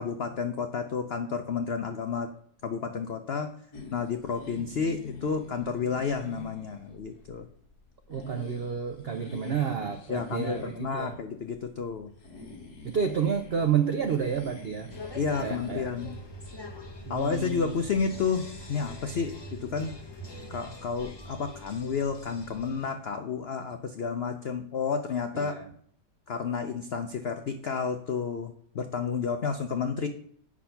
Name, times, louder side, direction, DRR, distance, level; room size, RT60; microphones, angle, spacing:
voice 1, 0.0-2.3 2.6-3.5 3.9-7.5 10.1-12.1 15.2-16.1 17.1-20.0 20.5-25.6 26.3-30.1, left 5 dB, 80° left, 7 dB, 0.5 m, -31 dB
sound 1, 3.7-19.5, left 3 dB, 60° left, 2.0 m, -47 dB
voice 2, 8.1-11.2 12.8-14.9 15.4-15.9 17.1-17.8 25.3-25.7, right 7 dB, 75° right, 6 dB, 0.5 m, -30 dB
sound 2, 14.9-22.9, equal, 20° left, 0.9 m, -43 dB
8.5 x 6.1 x 5.7 m, 0.63 s
omnidirectional pair, 1.9 m